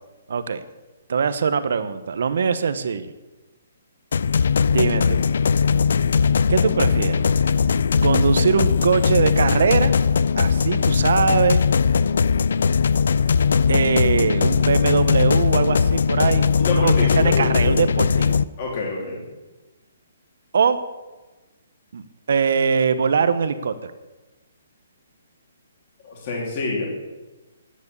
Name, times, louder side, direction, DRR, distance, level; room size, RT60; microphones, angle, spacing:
voice 1, 0.3-0.6 1.1-3.1 4.7-5.2 6.5-7.2 8.0-9.9 10.4-11.6 13.7-18.4 20.5-20.8 21.9-23.9, right 6 dB, 50° right, 12 dB, 1.0 m, -22 dB
sound 1, 4.1-18.4, left 6 dB, 55° left, 0.4 m, -19 dB
voice 2, 16.6-17.8 18.6-19.2 26.0-26.9, left 3 dB, 25° left, -2 dB, 3.3 m, -27 dB
11.0 x 9.9 x 8.6 m, 1.1 s
hypercardioid pair, 180°, 0 cm